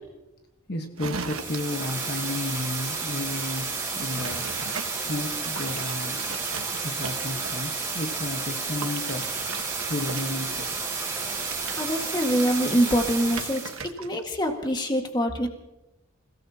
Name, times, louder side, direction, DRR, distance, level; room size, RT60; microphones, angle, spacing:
voice 1, 0.7-4.7 5.1-6.4 6.6-9.3 9.9-10.8, left 2 dB, 50° left, 4 dB, 1.3 m, -33 dB
sound 1, 1.0-2.2 4.1-4.9 5.4-7.8 8.8-14.2 14.5-14.8, right 5 dB, 90° right, 1.2 m, -39 dB
sound 2, 1.1-13.8, right 4 dB, 15° right, 4.8 m, -31 dB
voice 2, 11.7-13.6 14.0-15.5, equal, 20° left, 3 dB, 1.7 m, -24 dB
28.0 x 17.5 x 2.9 m, 0.96 s
head